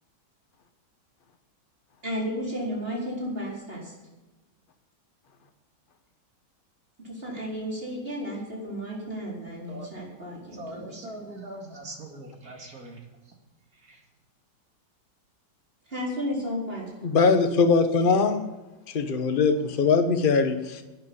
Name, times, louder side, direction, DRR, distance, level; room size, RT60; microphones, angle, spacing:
voice 1, 2.0-3.9 7.0-11.0 15.9-16.9, equal, 30° right, -4 dB, 4.7 m, -33 dB
voice 2, 10.5-13.0 13.7-14.0, right 2 dB, 55° right, 1 dB, 2.8 m, -41 dB
voice 3, 17.0-18.4 18.9-20.8, left 4 dB, 35° left, 7 dB, 1.2 m, -21 dB
12.0 x 9.5 x 8.6 m, 1.1 s
omnidirectional pair, 1.9 m